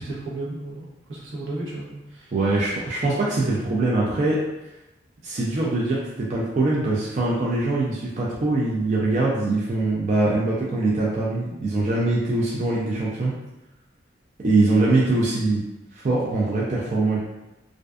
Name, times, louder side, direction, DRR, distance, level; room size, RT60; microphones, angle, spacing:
voice 1, 0.0-2.3 2.6-2.7, right 2 dB, 80° right, -5 dB, 0.8 m, -34 dB
voice 2, 2.3-4.4 5.2-13.3 14.4-15.6 15.9-17.2, right 2 dB, 35° right, -5 dB, 0.3 m, -23 dB
2.4 x 2.2 x 2.3 m, 0.97 s
head